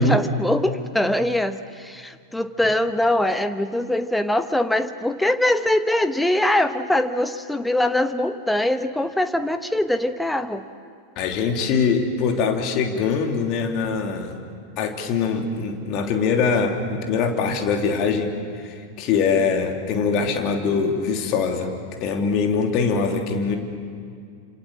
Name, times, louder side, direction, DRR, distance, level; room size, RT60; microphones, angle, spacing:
voice 1, 0.0-10.6, left 1 dB, 5° left, 10 dB, 1.1 m, -22 dB
voice 2, 11.2-14.3 14.8-18.3 18.6-23.6, left 5 dB, 40° left, 3 dB, 3.2 m, -23 dB
28.0 x 27.0 x 7.5 m, 2.3 s
figure-of-eight pair, 90°, 0 cm